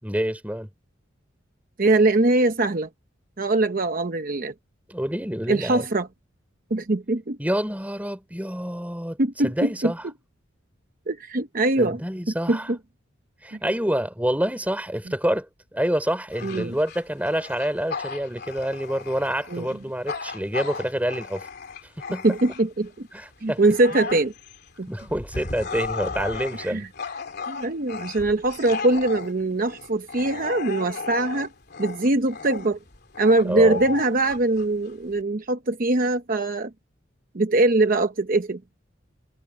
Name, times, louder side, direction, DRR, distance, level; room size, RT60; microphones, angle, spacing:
voice 1, 0.0-0.7 4.9-5.9 7.4-9.2 9.4-10.0 11.8-12.7 13.4-15.5 15.7-21.5 22.1-22.3 23.1-23.6 24.9-26.8 33.5-33.8, equal, 10° right, 3.6 m, -27 dB
voice 2, 1.8-2.9 3.4-4.5 5.5-6.1 6.7-7.4 9.2-9.9 11.1-12.0 12.5-12.8 13.5-13.6 16.4-16.7 19.5-19.7 22.2-23.1 23.4-24.3 24.8-24.9 26.6-26.9 27.5-31.5 31.8-32.8 33.2-36.7 37.3-38.6, right 2 dB, 45° right, 0.8 m, -22 dB
Bark / Growling, 16.3-22.9 23.3-35.2, left 4 dB, 55° left, 3.1 m, -35 dB
head